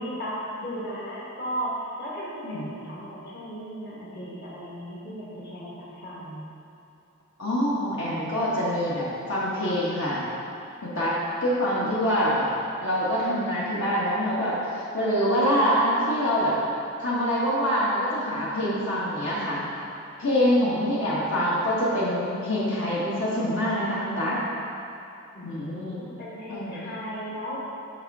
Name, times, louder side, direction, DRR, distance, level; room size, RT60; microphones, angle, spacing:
voice 1, 0.0-6.4 25.3-27.6, equal, 50° left, -7 dB, 1.6 m, -36 dB
voice 2, 7.4-10.2 10.8-11.1 11.4-12.4 12.8-16.6 17.0-19.6 20.2-24.4 25.4-26.0 26.5-26.9, equal, 70° left, -8 dB, 1.4 m, -25 dB
6.5 x 5.7 x 4.8 m, 2.8 s
head